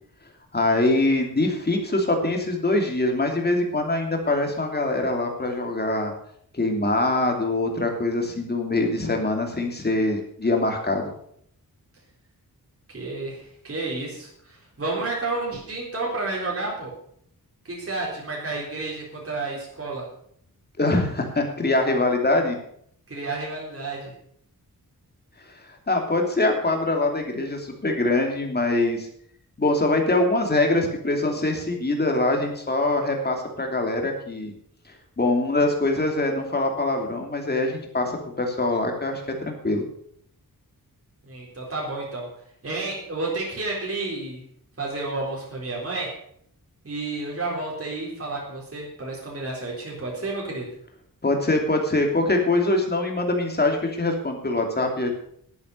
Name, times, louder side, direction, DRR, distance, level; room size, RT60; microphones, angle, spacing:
voice 1, 0.5-6.1 6.5-11.1 20.8-22.6 25.5-25.6 25.9-29.1 29.6-34.5 35.2-39.8 51.2-55.1, left 2 dB, 25° left, 2 dB, 2.8 m, -23 dB
voice 2, 12.9-16.9 17.6-20.1 23.1-24.1 41.2-42.3 42.6-44.4 44.8-46.1 46.8-50.7, right 3 dB, 40° right, -4 dB, 4.1 m, -31 dB
10.5 x 9.5 x 6.7 m, 0.67 s
wide cardioid pair, 125°, 36 cm